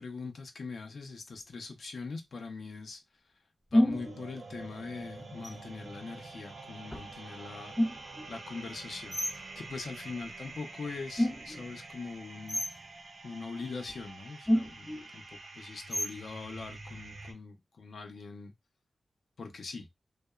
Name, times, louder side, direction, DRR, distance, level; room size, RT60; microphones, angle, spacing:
voice 1, 0.0-3.0 3.7-12.6 13.2-18.5 19.4-19.9, left 4 dB, 70° left, 0.5 m, -42 dB
sound 1, 1.3-1.4 3.7-4.2 5.4-6.0 6.9-7.1 7.7-8.3 9.1-9.4 11.2-11.7 12.5-12.8 13.9-14.0 14.4-15.1 15.9-16.3, left 1 dB, 5° left, 0.4 m, -29 dB
sound 2, 3.9-17.3, right 3 dB, 65° right, 0.5 m, -47 dB
2.8 x 2.0 x 2.2 m
wide cardioid pair, 130°, 0 cm